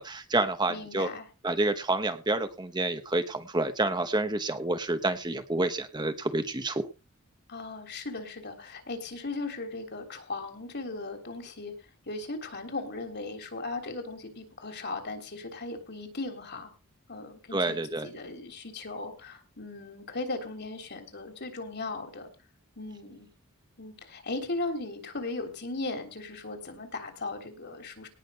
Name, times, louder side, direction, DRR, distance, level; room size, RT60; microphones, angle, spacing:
voice 1, 0.0-1.1 1.4-6.9 17.5-18.1, right 2 dB, 20° right, 9 dB, 0.9 m, -28 dB
voice 2, 0.7-1.2 7.5-11.7 12.1-16.7 17.1-17.8 18.0-22.3 22.8-23.3 23.8-28.1, left 3 dB, 50° left, 5 dB, 3.3 m, -37 dB
18.5 x 6.3 x 5.6 m, 0.31 s
head